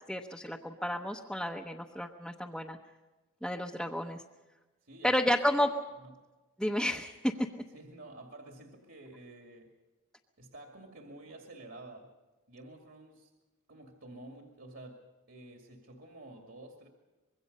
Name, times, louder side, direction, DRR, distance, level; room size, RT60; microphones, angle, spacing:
voice 1, 0.1-2.8 3.4-4.2 5.0-5.7 6.6-7.3, left 1 dB, ahead, 0 dB, 0.9 m, -31 dB
voice 2, 4.8-5.3 6.0-6.1 7.7-9.7 10.4-12.1 12.5-13.3 13.7-15.0 15.3-16.9, right 2 dB, 60° right, 2 dB, 2.5 m, -50 dB
25.5 x 22.0 x 5.5 m, 1.2 s
head